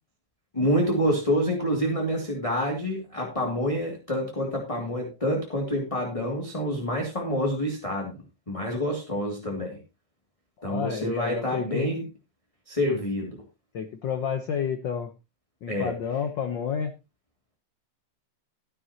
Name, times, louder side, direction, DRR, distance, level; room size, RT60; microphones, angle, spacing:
voice 1, 0.5-9.8 10.6-12.1 12.7-13.4 15.7-16.0, equal, 10° left, 0 dB, 2.1 m, -27 dB
voice 2, 10.6-11.9 13.7-15.1 15.6-16.9, left 7 dB, 70° left, 8 dB, 1.1 m, -30 dB
14.0 x 11.0 x 2.9 m, 0.26 s
omnidirectional pair, 3.4 m